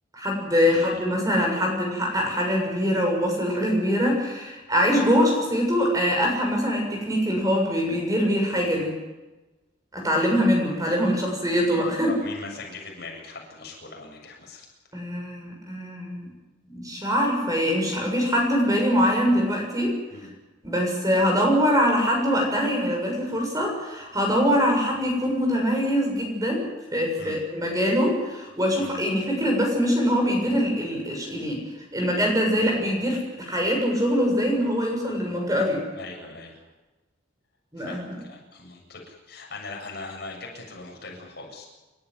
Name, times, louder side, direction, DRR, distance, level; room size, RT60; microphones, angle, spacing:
voice 1, 0.1-8.9 9.9-12.1 14.9-16.4 16.7-20.0 20.6-26.6 26.9-31.6 31.9-35.8 37.7-38.0, equal, 20° right, 1 dB, 6.9 m, -23 dB
voice 2, 12.1-14.7 20.1-20.3 27.2-27.4 28.8-29.0 35.9-36.6 37.8-41.7, left 3 dB, 55° left, 0 dB, 7.5 m, -40 dB
28.5 x 13.5 x 9.6 m, 1.1 s
head